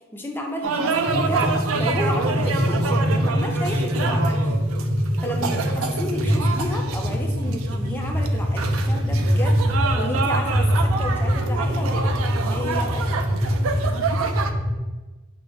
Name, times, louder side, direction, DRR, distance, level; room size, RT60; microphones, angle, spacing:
voice 1, 0.1-4.5 5.0-12.1 12.4-13.3, left 1 dB, 10° left, 2 dB, 0.5 m, -32 dB
sound 1, 0.6-14.5, right 5 dB, 75° right, 0.4 m, -28 dB
sound 2, 1.0-14.8, equal, 50° right, 1.0 m, -23 dB
4.8 x 2.0 x 4.7 m, 1.1 s
head